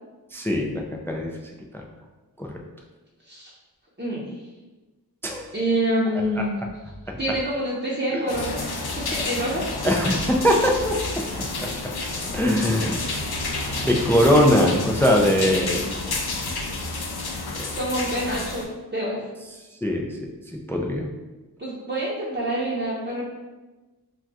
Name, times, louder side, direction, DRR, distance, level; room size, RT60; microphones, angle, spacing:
voice 1, 0.3-1.3 1.7-1.8 2.4-2.6 5.2-5.5 7.1-7.2 9.8-11.7 12.3-13.0 13.8-16.0 17.6-17.7 19.8-20.3 20.7-21.1, equal, 5° left, 0 dB, 0.3 m, -22 dB
voice 2, 4.0-4.3 5.5-6.5 7.2-9.7 17.7-19.2 21.6-23.3, right 1 dB, 25° right, -8 dB, 0.7 m, -27 dB
sound 1, 8.3-18.6, left 3 dB, 70° left, 0.5 m, -30 dB
2.3 x 2.3 x 3.9 m, 1.2 s
wide cardioid pair, 45°, 39 cm